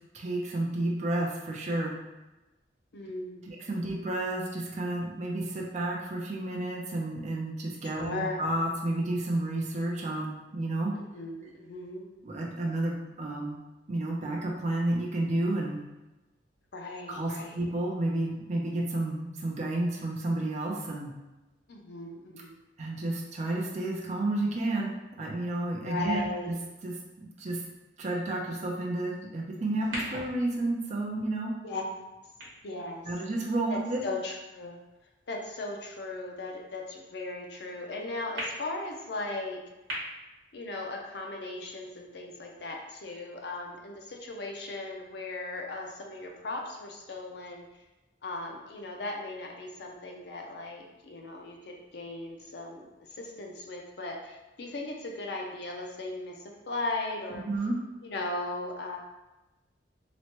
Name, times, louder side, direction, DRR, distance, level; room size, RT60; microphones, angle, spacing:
voice 1, 0.1-2.0 3.5-10.9 12.2-13.6 13.9-15.8 17.1-21.1 22.8-24.9 25.2-26.5 26.8-27.6 28.0-31.5 33.0-34.0 57.3-57.8, right 2 dB, 40° right, -2 dB, 0.4 m, -31 dB
voice 2, 2.9-3.5 8.0-8.4 10.9-12.1 16.7-17.6 21.7-22.5 25.8-26.5 31.6-31.9 32.6-33.0 33.7-34.8 35.3-39.6 40.5-47.7 48.2-57.5 58.0-59.0, left 2 dB, 65° left, 0 dB, 0.5 m, -37 dB
sound 1, 29.8-34.2 34.9-35.0 38.4-38.5 39.9-40.0, equal, 80° right, 1.0 m, -42 dB
3.0 x 2.1 x 2.8 m, 1.1 s
head